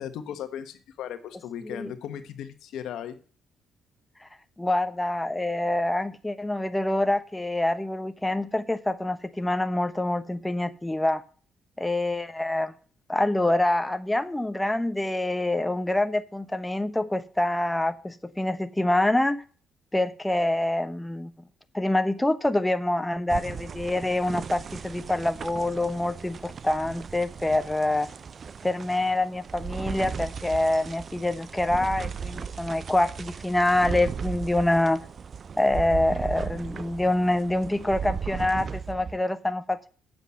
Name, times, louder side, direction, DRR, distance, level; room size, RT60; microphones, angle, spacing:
voice 1, 0.0-3.2, left 9 dB, 80° left, 1.2 m, -37 dB
voice 2, 4.6-11.2 11.8-12.7 13.1-19.4 19.9-21.3 21.7-28.1 28.6-35.0 35.6-39.9, left 1 dB, 10° left, 0.9 m, -26 dB
sound 1, 23.3-39.2, right 6 dB, 50° right, 0.4 m, -37 dB
7.9 x 7.2 x 8.2 m
supercardioid pair, 70°, 0 cm